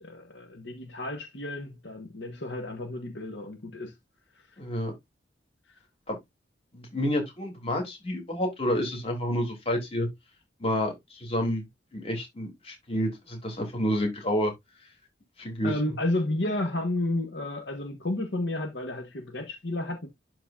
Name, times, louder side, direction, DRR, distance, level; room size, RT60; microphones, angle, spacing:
voice 1, 0.0-3.9 15.6-20.1, left 1 dB, 75° left, 1.4 m, -32 dB
voice 2, 4.6-4.9 6.1-6.2 6.7-10.1 10.6-11.6 11.9-14.5 15.4-15.9, equal, 35° left, 3.0 m, -29 dB
12.0 x 4.0 x 2.5 m
head